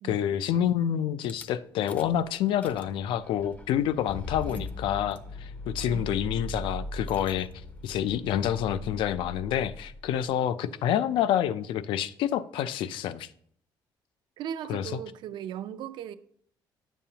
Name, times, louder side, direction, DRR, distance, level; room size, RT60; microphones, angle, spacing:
voice 1, 0.0-7.5 7.8-13.3 14.7-14.9, left 10 dB, 75° left, 0.4 m, -28 dB
Rattle / Car / Engine starting, 1.3-1.5 1.9-2.2 2.5-10.2, left 2 dB, 15° left, 0.5 m, -40 dB
voice 2, 14.4-16.2, right 10 dB, 65° right, 0.5 m, -38 dB
9.9 x 7.2 x 2.8 m
cardioid pair, 165°, 9 cm